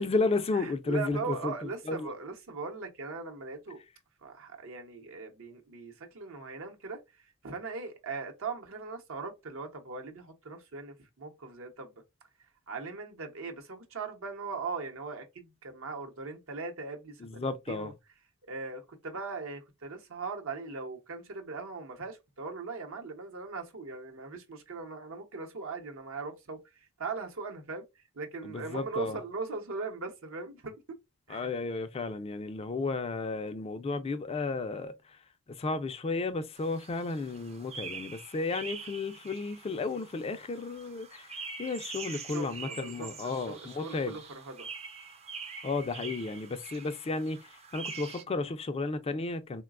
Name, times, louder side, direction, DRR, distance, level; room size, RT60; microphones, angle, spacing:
voice 1, 0.0-1.5 1.9-2.1 17.2-17.9 28.4-29.2 31.3-35.2 35.5-44.2 45.6-49.6, left 3 dB, 25° left, 0.3 m, -33 dB
voice 2, 0.5-3.8 4.2-11.9 12.7-17.9 18.5-27.8 28.1-31.0 31.3-31.5 42.1-44.7, right 4 dB, 65° right, 0.8 m, -40 dB
sound 1, 36.6-48.2, right 5 dB, 30° right, 0.5 m, -45 dB
3.9 x 2.2 x 2.3 m
head